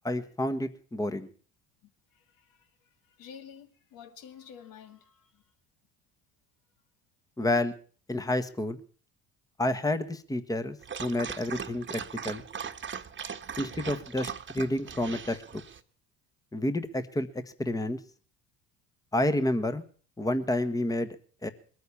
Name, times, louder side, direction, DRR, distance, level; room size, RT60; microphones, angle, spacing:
voice 1, 0.0-1.3 7.4-7.7 8.1-8.8 9.6-12.4 13.6-15.4 16.5-17.3 17.6-18.0 19.1-19.8 20.2-21.1 21.4-21.5, left 1 dB, 10° left, 1.4 m, -29 dB
voice 2, 1.8-5.4, left 8 dB, 65° left, 2.2 m, -51 dB
Dog, 10.8-15.8, right 7 dB, 30° right, 1.4 m, -39 dB
21.0 x 9.4 x 7.1 m
supercardioid pair, 75°, 36 cm